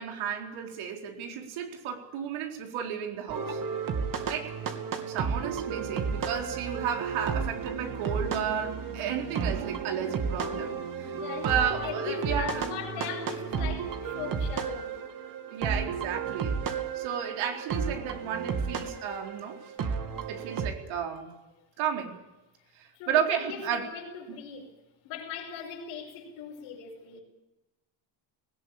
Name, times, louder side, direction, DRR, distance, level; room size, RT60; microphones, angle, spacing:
voice 1, 0.0-3.6 4.3-4.5 5.1-11.2 11.4-12.8 15.5-19.7 20.3-21.3 21.8-22.1 22.8-23.9 24.3-24.4, right 8 dB, 80° right, 4.3 m, -33 dB
sound 1, 3.3-20.7, right 6 dB, 45° right, 2.7 m, -33 dB
voice 2, 11.2-15.1 20.0-20.1 23.0-24.7 25.0-27.2, left 7 dB, 90° left, 5.5 m, -39 dB
19.0 x 17.5 x 8.7 m
cardioid pair, 125°, 48 cm